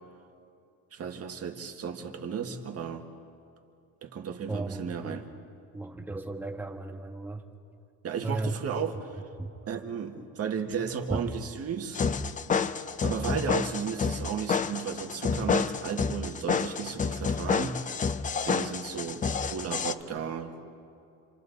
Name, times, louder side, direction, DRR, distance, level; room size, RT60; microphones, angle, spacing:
voice 1, 0.9-3.1 4.0-5.3 8.0-9.2 9.7-12.0 13.0-17.8 18.4-20.6, right 6 dB, 40° right, 4 dB, 1.8 m, -34 dB
voice 2, 4.5-5.2 5.7-7.4 8.2-8.6 9.4-9.5 11.1-11.2, right 2 dB, 5° right, 3 dB, 1.3 m, -35 dB
sound 1, 11.9-19.9, left 5 dB, 20° left, 0.5 m, -29 dB
29.5 x 27.0 x 4.1 m, 2.6 s
cardioid pair, 145°, 38 cm